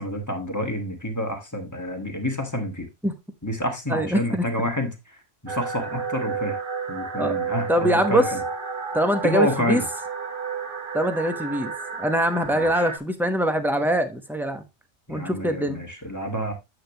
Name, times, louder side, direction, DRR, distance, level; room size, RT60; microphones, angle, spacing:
voice 1, 0.0-2.9 3.4-6.6 6.9-8.4 9.2-9.8 12.5-12.7 15.1-16.5, equal, 15° left, 1.5 m, -28 dB
voice 2, 3.9-4.4 7.2-7.3 7.7-8.3 8.9-9.8 10.9-11.7 12.0-14.6 15.1-15.8, equal, ahead, 0.8 m, -23 dB
sound 1, 5.5-13.0, right 5 dB, 50° right, 1.1 m, -31 dB
8.7 x 6.8 x 2.9 m
omnidirectional pair, 1.2 m